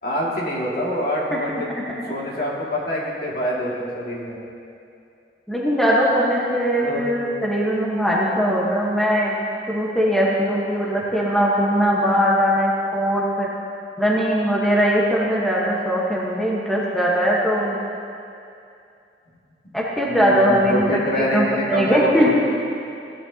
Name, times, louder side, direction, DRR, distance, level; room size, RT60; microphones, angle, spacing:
voice 1, 0.0-4.4 6.8-7.0 20.1-22.3, equal, 60° left, -5 dB, 2.3 m, -25 dB
voice 2, 5.5-9.4 9.7-13.5 14.0-17.8 19.7-22.3, equal, ahead, -6 dB, 1.2 m, -20 dB
16.0 x 10.0 x 2.8 m, 2.6 s
head